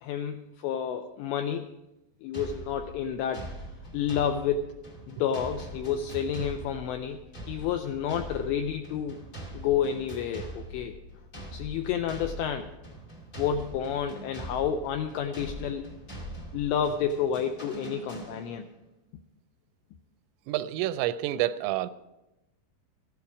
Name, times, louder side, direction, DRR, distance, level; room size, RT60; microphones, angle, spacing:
voice 1, 0.0-1.7 2.2-3.5 3.9-4.7 5.1-7.2 7.5-9.2 9.5-10.9 11.5-12.7 13.4-15.9 16.5-18.6, left 8 dB, 90° left, 7 dB, 2.5 m, -30 dB
sound 1, 2.3-18.8, right 1 dB, 40° left, 1.1 m, -42 dB
voice 2, 20.5-21.9, right 14 dB, 90° right, 13 dB, 3.2 m, -28 dB
14.0 x 11.5 x 4.9 m, 0.96 s
omnidirectional pair, 5.8 m